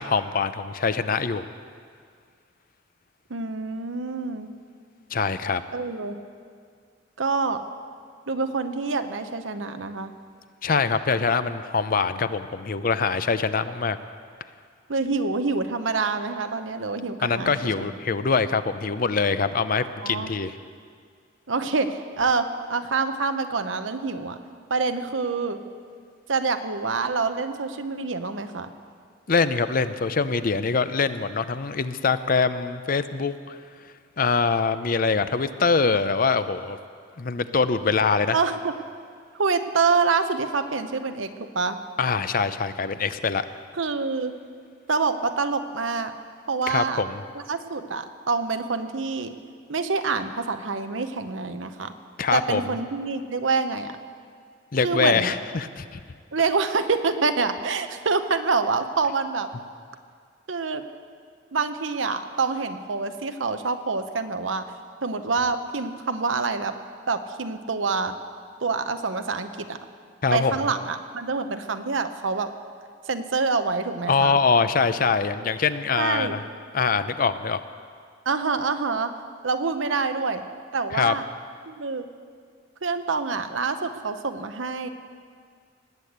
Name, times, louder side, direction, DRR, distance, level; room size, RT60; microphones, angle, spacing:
voice 1, 0.0-1.4 5.1-5.6 10.6-14.0 17.2-20.5 29.3-33.6 34.2-36.8 37.2-38.4 42.0-43.4 46.7-47.2 52.2-52.6 54.7-56.0 70.2-70.5 74.1-76.4 76.7-77.6 80.9-81.1, left 5 dB, 45° left, 12 dB, 0.6 m, -23 dB
voice 2, 3.3-4.5 5.7-6.2 7.2-7.6 8.3-10.1 14.9-17.9 20.0-20.3 21.5-24.4 24.7-25.6 26.3-28.7 38.3-38.7 39.4-41.8 43.8-44.3 44.9-46.1 46.5-47.0 47.5-49.3 49.7-51.9 52.3-54.0 54.8-55.3 56.3-59.5 60.5-60.8 61.5-64.6 65.0-66.7 67.1-68.1 68.6-69.8 70.3-72.5 73.1-74.4 76.0-76.4 78.3-79.1 79.4-80.4 80.7-81.2 81.7-82.0 82.8-84.9, right 4 dB, 85° right, 9 dB, 0.9 m, -26 dB
19.5 x 8.5 x 8.0 m, 2.1 s
head